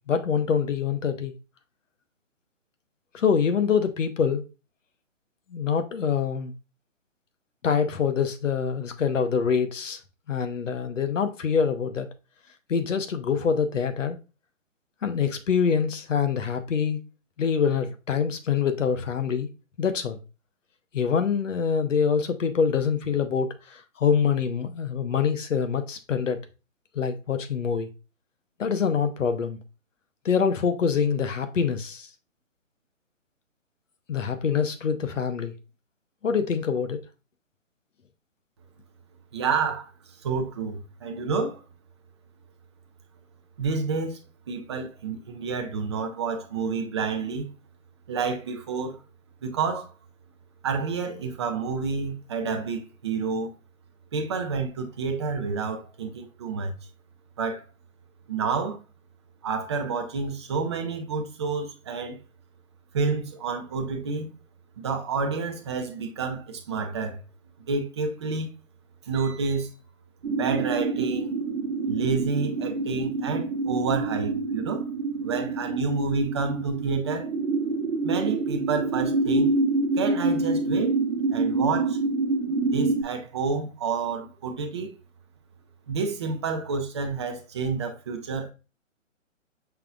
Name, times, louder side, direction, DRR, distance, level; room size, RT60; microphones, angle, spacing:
voice 1, 0.1-1.3 3.1-4.4 5.5-6.5 7.6-10.0 10.3-12.1 12.7-14.2 15.0-17.0 17.4-19.5 19.8-20.2 20.9-26.4 26.9-27.9 28.6-29.6 30.2-32.1 34.1-35.5 36.2-37.0, left 6 dB, 70° left, 0.9 m, -25 dB
voice 2, 39.3-39.9 40.2-41.6 43.6-44.2 44.5-47.5 48.1-49.0 49.4-49.9 50.6-53.5 54.1-56.7 57.4-57.6 58.3-58.8 59.4-62.2 62.9-64.3 64.8-67.2 67.7-68.5 69.1-69.7 70.3-71.3 71.9-74.8 75.2-77.3 78.0-79.5 80.0-81.0 81.3-82.0 82.7-84.9 85.9-88.5, right 4 dB, 20° right, 0.5 m, -29 dB
sound 1, 70.2-83.0, right 3 dB, 60° right, 1.1 m, -26 dB
5.7 x 3.8 x 2.2 m
figure-of-eight pair, 140°, 39 cm